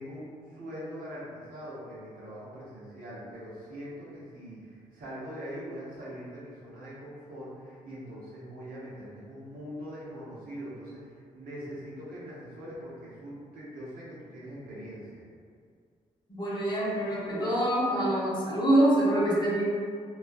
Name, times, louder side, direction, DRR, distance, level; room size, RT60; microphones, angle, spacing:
voice 1, 0.0-15.2, equal, 75° right, -8 dB, 0.9 m, -42 dB
voice 2, 16.3-19.6, right 1 dB, 30° left, -7 dB, 0.9 m, -25 dB
2.3 x 2.3 x 2.5 m, 2.1 s
supercardioid pair, 60°, 15 cm